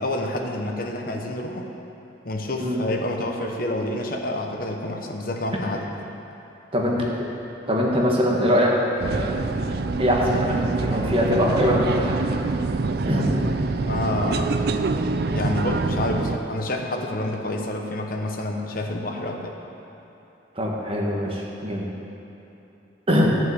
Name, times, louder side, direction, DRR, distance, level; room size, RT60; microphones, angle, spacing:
voice 1, 0.0-1.7 2.2-5.9 13.8-14.6 15.3-19.5, left 1 dB, 55° left, 2 dB, 1.0 m, -28 dB
voice 2, 6.7-7.3 7.7-9.4 10.0-12.2 13.1-13.3 20.5-21.9 23.1-23.3, equal, 30° right, -3 dB, 1.6 m, -22 dB
sound 1, 9.0-16.4, right 3 dB, 60° right, 0.4 m, -25 dB
11.5 x 5.6 x 8.1 m, 3.0 s
head